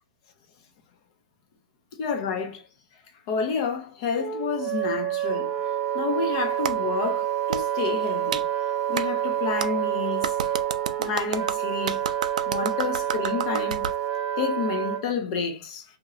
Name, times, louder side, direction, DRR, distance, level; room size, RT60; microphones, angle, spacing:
voice 1, 2.0-2.6 3.3-5.5 5.9-8.4 8.9-10.3 11.0-12.0 12.5-13.9 14.4-15.8, left 6 dB, 40° left, 0.8 m, -29 dB
Wind instrument woodwind instrument, 4.2-15.0, right 11 dB, 5° right, 0.5 m, -28 dB
Clapping, 6.6-6.8 7.5-7.6 8.3-8.4 9.0-9.1 9.6-9.7 10.2-14.0, right 8 dB, 70° right, 0.4 m, -30 dB
3.0 x 2.7 x 2.5 m
hypercardioid pair, 140°, 4 cm